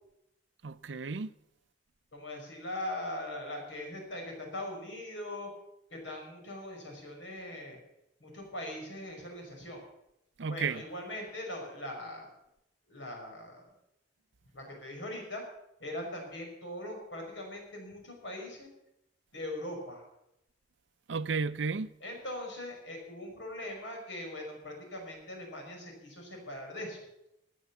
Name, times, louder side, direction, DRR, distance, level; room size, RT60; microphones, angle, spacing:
voice 1, 0.6-1.3 10.4-10.8 21.1-21.9, right 5 dB, 70° right, 0.6 m, -33 dB
voice 2, 2.1-5.5 5.9-7.8 8.2-9.8 10.5-12.3 12.9-13.7 14.5-15.4 15.8-18.7 19.3-20.1 22.0-27.0, left 1 dB, 80° left, 5.8 m, -41 dB
17.5 x 9.4 x 7.2 m
head